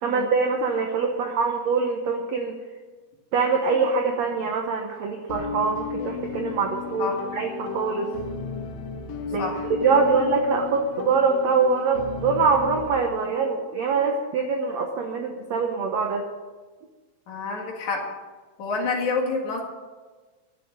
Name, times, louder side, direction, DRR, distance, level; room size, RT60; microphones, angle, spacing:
voice 1, 0.0-2.5 3.3-8.1 9.3-9.4 9.7-16.3, right 4 dB, 75° right, 3 dB, 1.5 m, -24 dB
sound 1, 5.3-12.9, left 5 dB, 85° left, 1.4 m, -34 dB
voice 2, 17.3-18.0 18.6-19.6, left 4 dB, 55° left, 0 dB, 2.8 m, -28 dB
11.5 x 7.4 x 9.5 m, 1.3 s
omnidirectional pair, 4.6 m